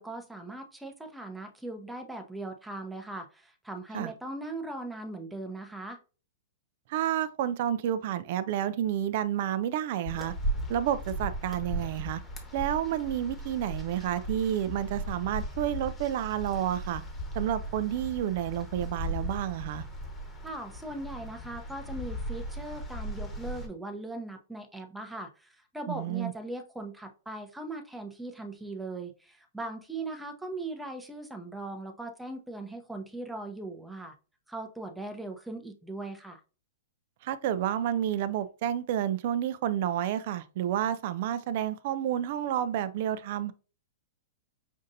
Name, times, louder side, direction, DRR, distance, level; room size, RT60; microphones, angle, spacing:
voice 1, 0.0-6.0 20.4-34.1 34.5-36.4, right 2 dB, 5° right, 0.7 m, -39 dB
voice 2, 6.9-10.3 10.7-12.2 12.5-17.0 17.3-19.8 25.9-26.3 37.2-43.5, right 11 dB, 55° right, 0.3 m, -30 dB
sound 1, 10.1-23.7, right 1 dB, 15° left, 1.1 m, -37 dB
5.3 x 2.5 x 2.6 m
hypercardioid pair, 130°, 0 cm